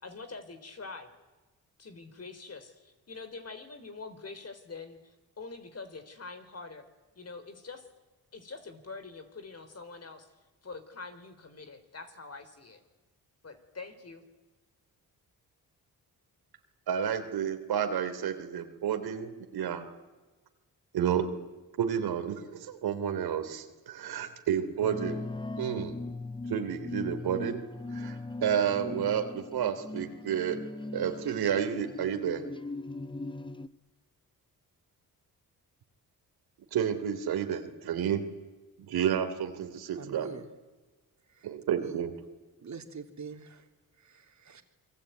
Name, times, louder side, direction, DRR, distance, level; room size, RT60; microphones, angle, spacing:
voice 1, 0.0-1.1 1.8-6.8 7.2-7.9 8.3-10.3 10.6-12.8 13.4-14.2, left 4 dB, 40° left, 9 dB, 4.1 m, -45 dB
voice 2, 16.9-19.9 20.9-21.2 21.8-25.3 25.6-25.9 26.5-27.6 27.9-30.6 30.9-32.4 36.7-38.2 38.8-40.3 41.4-42.1, right 8 dB, 85° right, 7 dB, 3.2 m, -30 dB
sound 1, 24.8-33.7, left 2 dB, 15° left, 0.9 m, -39 dB
voice 3, 40.0-40.5 41.4-41.5 41.8-42.0 42.6-43.7 44.0-44.6, right 5 dB, 50° right, 5 dB, 3.4 m, -44 dB
28.5 x 22.0 x 9.3 m, 1.2 s
cardioid pair, 80°, 37 cm